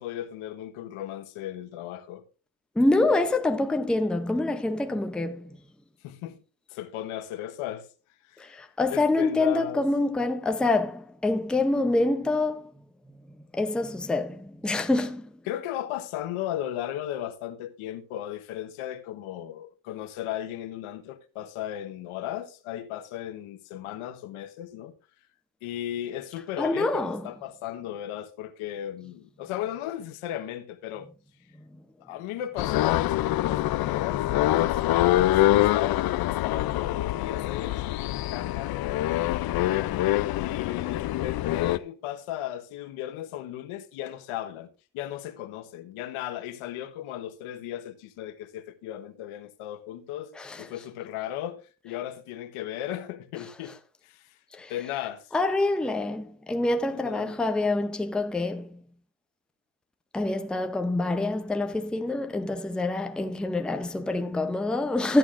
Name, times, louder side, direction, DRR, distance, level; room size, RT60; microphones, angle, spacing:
voice 1, 0.0-2.2 4.9-5.0 6.0-6.4 6.7-7.9 8.3-8.5 8.9-9.9 15.5-24.9 25.6-31.1 32.0-39.5 40.4-44.7 44.9-53.8 54.0-54.3 54.7-55.2 56.9-57.4, left 12 dB, 85° left, 1.4 m, -36 dB
voice 2, 2.8-5.5 8.4-12.7 13.5-15.3 26.6-27.2 50.4-50.7 54.5-54.7 55.3-58.8 60.1-65.2, left 2 dB, ahead, 0.6 m, -26 dB
sound 1, 32.6-41.8, left 15 dB, 50° left, 0.5 m, -25 dB
13.5 x 9.4 x 2.5 m
cardioid pair, 125°, 49 cm